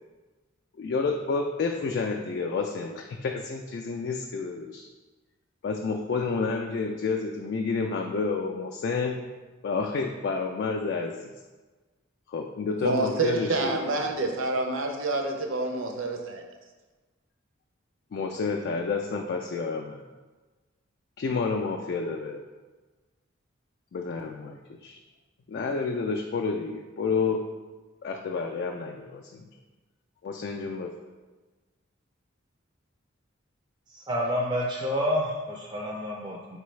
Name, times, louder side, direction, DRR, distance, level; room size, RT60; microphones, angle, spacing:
voice 1, 0.8-4.9 5.6-9.2 9.6-11.3 12.3-13.8 18.1-20.0 21.2-22.4 23.9-25.0 25.5-27.5 28.0-29.5 30.2-30.9, left 4 dB, 55° left, 2 dB, 0.3 m, -30 dB
voice 2, 12.8-16.4, right 2 dB, 75° right, 3 dB, 0.6 m, -28 dB
voice 3, 33.9-36.6, equal, 20° right, -2 dB, 0.4 m, -29 dB
4.5 x 3.3 x 3.1 m, 1.3 s
head